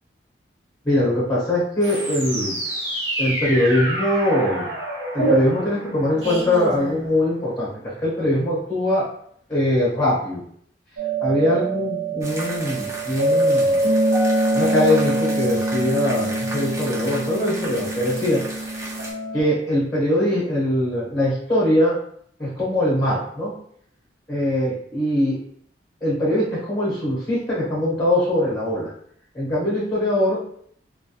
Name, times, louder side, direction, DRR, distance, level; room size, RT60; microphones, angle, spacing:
voice 1, 0.8-2.6 3.2-4.7 5.1-9.0 9.5-10.4 11.2-13.9 14.5-18.7 19.3-21.9 22.4-23.5 24.3-25.4 26.0-28.9 29.3-30.5, left 1 dB, 15° left, -7 dB, 0.8 m, -22 dB
sound 1, 1.8-7.5, right 1 dB, 85° right, 1.2 m, -27 dB
Rhodes melody, 11.0-19.4, right 1 dB, 65° right, 0.7 m, -24 dB
sound 2, 12.2-19.1, right 1 dB, 15° right, 0.3 m, -35 dB
2.2 x 2.1 x 2.7 m, 0.64 s
head